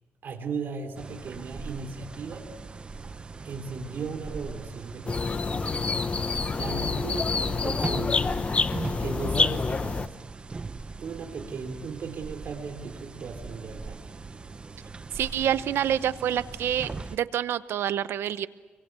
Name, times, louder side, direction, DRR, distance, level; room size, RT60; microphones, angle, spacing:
voice 1, 0.2-2.5 3.4-6.1 6.5-8.2 9.0-10.1 11.0-14.0, right 5 dB, 60° right, 3 dB, 3.7 m, -37 dB
sound 1, 0.9-17.2, right 4 dB, 25° right, 0.9 m, -40 dB
sound 2, 5.1-10.1, left 4 dB, 30° left, 0.8 m, -27 dB
voice 2, 15.1-18.5, right 10 dB, 85° right, 14 dB, 0.8 m, -27 dB
28.5 x 23.5 x 8.3 m, 1.3 s
cardioid pair, 115°, 4 cm